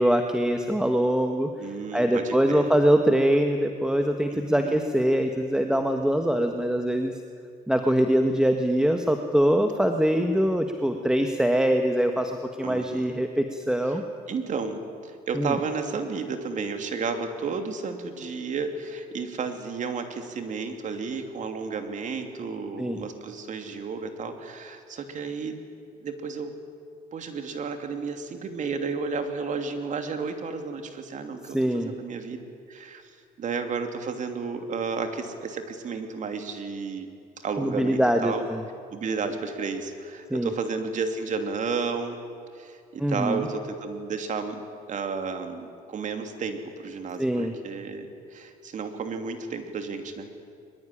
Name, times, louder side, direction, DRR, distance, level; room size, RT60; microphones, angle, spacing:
voice 1, 0.0-1.5 1.9-7.1 7.7-14.0 15.3-15.5 22.8-23.0 31.5-31.9 37.6-38.6 40.3-40.5 43.0-43.4 47.2-47.5, equal, 5° right, 5 dB, 1.5 m, -23 dB
voice 2, 1.6-2.7 4.3-4.8 12.6-13.1 14.3-25.6 26.0-26.5 27.1-32.4 32.7-33.0 33.4-37.1 37.4-38.4 38.9-42.2 42.5-44.6 44.9-50.3, right 5 dB, 45° right, 6 dB, 2.9 m, -32 dB
22.5 x 21.5 x 10.0 m, 2.4 s
cardioid pair, 110°, 17 cm